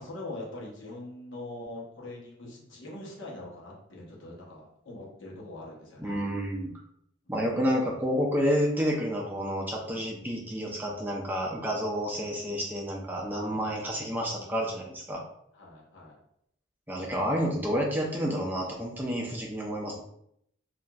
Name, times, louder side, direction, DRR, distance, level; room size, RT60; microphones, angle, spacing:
voice 1, 0.0-6.2 7.2-7.3 13.4-13.6 15.5-16.2, left 2 dB, 65° left, -4 dB, 0.9 m, -42 dB
voice 2, 6.0-6.7 7.3-15.2 16.9-20.0, equal, 10° right, -2 dB, 0.4 m, -29 dB
2.9 x 2.4 x 2.2 m, 0.74 s
head